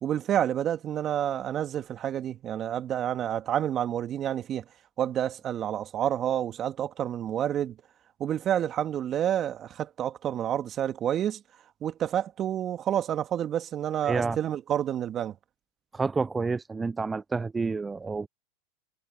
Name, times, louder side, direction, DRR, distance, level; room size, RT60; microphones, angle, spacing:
voice 1, 0.0-4.6 5.0-7.8 8.2-11.4 11.8-15.3, right 10 dB, 40° right, 1.9 m, -29 dB
voice 2, 14.0-14.4 15.9-18.3, right 4 dB, 15° right, 0.4 m, -29 dB
hypercardioid pair, 100°, 0 cm